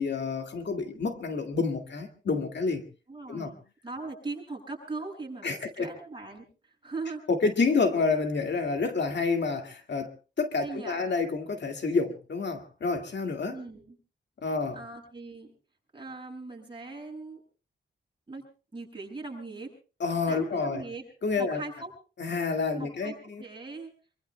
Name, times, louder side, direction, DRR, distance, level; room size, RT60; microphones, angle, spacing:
voice 1, 0.0-2.8 3.3-3.5 5.4-5.9 7.3-10.1 10.4-13.6 14.4-14.8 20.0-20.8 21.2-21.6 22.2-23.4, left 4 dB, 65° left, 2.0 m, -28 dB
voice 2, 3.1-6.4 6.8-7.2 10.6-11.0 13.5-14.0 14.8-15.5 15.9-17.4 18.3-18.4 18.7-19.7 20.3-21.0 21.4-21.9 22.8-23.9, right 3 dB, 25° right, 7.6 m, -39 dB
26.0 x 24.0 x 2.2 m
wide cardioid pair, 130°, 20 cm